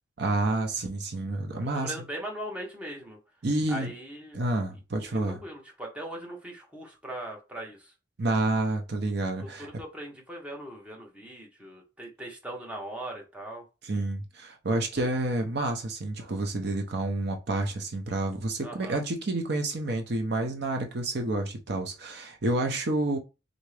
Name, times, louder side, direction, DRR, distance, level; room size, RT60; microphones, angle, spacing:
voice 1, 0.2-1.9 3.4-3.9 4.3-5.4 8.2-9.7 13.8-23.2, right 2 dB, 55° right, 0.7 m, -29 dB
voice 2, 1.7-3.2 3.7-4.4 5.1-7.9 9.4-13.6 18.6-19.0, right 1 dB, 5° right, 1.0 m, -40 dB
3.9 x 3.6 x 3.3 m
head